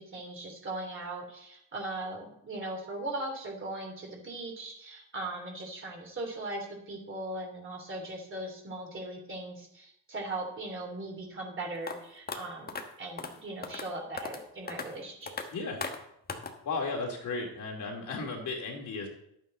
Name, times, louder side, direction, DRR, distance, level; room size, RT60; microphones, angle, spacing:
voice 1, 0.0-15.3, right 2 dB, 30° right, 1 dB, 3.2 m, -39 dB
sound 1, 11.9-12.0 12.3-12.4 12.7-12.8 13.2-13.3 13.6-13.9 14.2-14.4 14.7-14.9 15.3-15.4 15.8-16.0 16.3-16.5, left 4 dB, 25° left, 1.3 m, -36 dB
voice 2, 15.5-15.8 16.6-19.1, left 3 dB, 50° left, 0 dB, 2.8 m, -34 dB
11.0 x 8.9 x 3.9 m, 0.76 s
cardioid pair, 115°, 38 cm